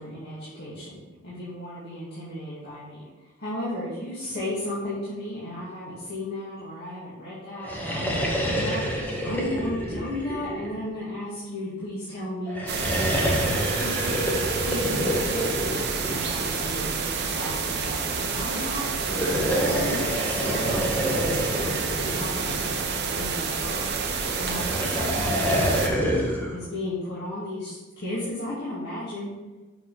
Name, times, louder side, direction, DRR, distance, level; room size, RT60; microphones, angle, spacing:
voice 1, 0.0-13.5 13.7-14.3 14.6-15.7 16.1-18.9 19.2-26.1 26.5-29.3, left 1 dB, 50° left, -9 dB, 2.1 m, -35 dB
sound 1, 7.5-11.2 12.5-16.8 19.0-23.0 24.3-26.5, equal, 10° left, 1.1 m, -27 dB
sound 2, 12.7-25.9, right 5 dB, 50° right, 0.9 m, -29 dB
7.3 x 5.7 x 4.1 m, 1.2 s
head